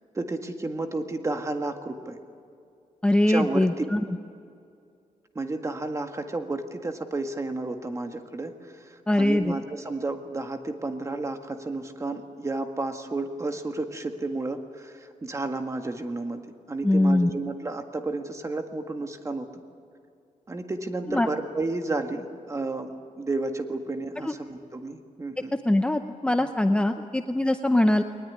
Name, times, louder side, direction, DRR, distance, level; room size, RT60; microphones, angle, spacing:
voice 1, 0.1-2.2 3.3-3.8 5.3-16.4 16.7-19.5 20.5-22.9 23.2-25.5, right 2 dB, 20° right, 6 dB, 1.8 m, -32 dB
voice 2, 3.0-4.0 9.1-9.5 16.8-17.3 21.1-21.3 24.2-24.3 25.6-28.0, left 1 dB, 10° left, 7 dB, 0.7 m, -22 dB
22.0 x 20.0 x 9.6 m, 2.4 s
wide cardioid pair, 135°, 13 cm